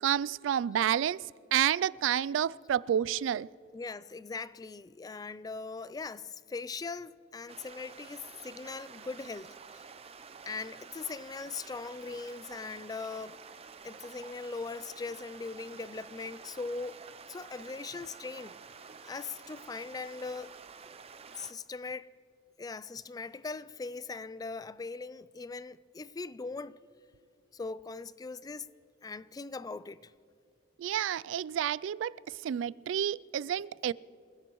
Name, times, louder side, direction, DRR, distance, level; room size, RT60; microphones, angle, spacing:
voice 1, 0.0-1.2 1.5-3.5 30.8-32.1 32.4-33.9, right 9 dB, 90° right, 0.3 m, -29 dB
voice 2, 3.7-9.9 10.4-13.4 13.8-18.6 19.0-20.6 21.4-22.1 22.6-26.8 27.5-28.7 29.0-30.1, left 4 dB, 20° left, 0.3 m, -40 dB
sound 1, 7.5-21.5, right 5 dB, 35° right, 0.6 m, -50 dB
28.0 x 15.5 x 3.0 m
head